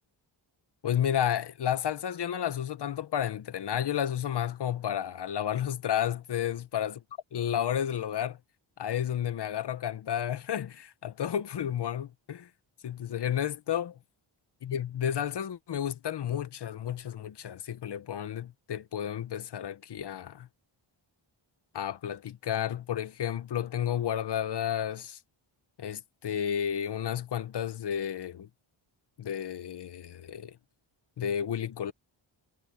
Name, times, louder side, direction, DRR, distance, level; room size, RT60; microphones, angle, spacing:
voice 1, 0.8-6.9 7.3-8.4 8.8-12.5 12.8-14.0 14.6-20.5 21.7-25.2 25.8-28.5 29.2-30.6 31.2-31.9, left 9 dB, 55° left, 1.0 m, -32 dB
wide cardioid pair, 145°, 49 cm